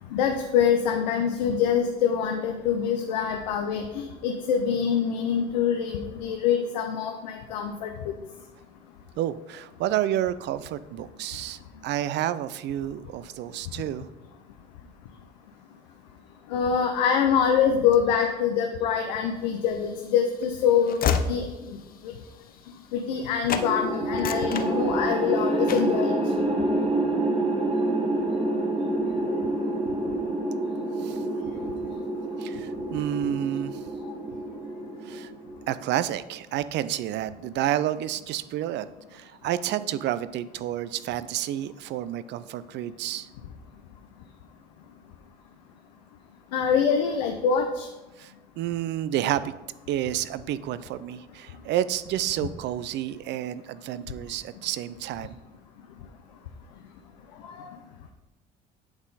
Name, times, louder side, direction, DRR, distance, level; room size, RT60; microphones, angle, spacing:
voice 1, 0.1-8.1 16.5-21.8 22.0-22.1 22.9-26.2 46.5-47.9 57.4-57.7, left 7 dB, 85° left, 4 dB, 0.6 m, -25 dB
voice 2, 9.2-14.1 31.0-31.3 32.4-33.8 35.0-35.3 35.7-43.3 48.2-49.5 49.9-55.4, right 12 dB, 55° right, 15 dB, 0.4 m, -30 dB
Train / Slam, 19.6-23.2 23.5-23.7 24.1-25.3 25.7-26.0, left 7 dB, 45° left, 0.6 m, -31 dB
sound 1, 23.6-35.9, right 1 dB, 30° right, 1.4 m, -27 dB
8.6 x 3.7 x 4.0 m, 1.1 s
hypercardioid pair, 65°, 21 cm